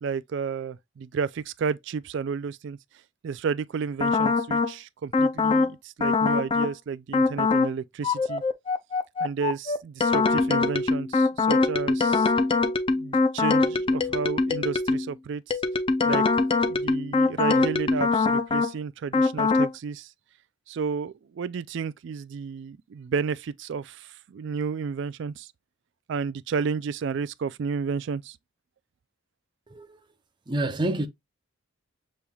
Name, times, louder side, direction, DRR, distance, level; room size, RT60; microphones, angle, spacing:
voice 1, 0.0-2.8 3.2-8.4 9.2-12.3 12.9-15.6 16.1-16.2 16.7-20.1 20.7-25.5 26.1-28.4, right 5 dB, 55° right, 0.3 m, -32 dB
sound 1, 4.0-4.7 5.1-5.7 6.0-6.7 7.1-7.7 8.0-15.1 15.5-18.7 19.1-19.7, left 3 dB, 25° left, 0.4 m, -23 dB
voice 2, 29.7-30.0 30.5-31.1, right 1 dB, 20° right, 0.6 m, -28 dB
6.8 x 3.1 x 2.3 m
head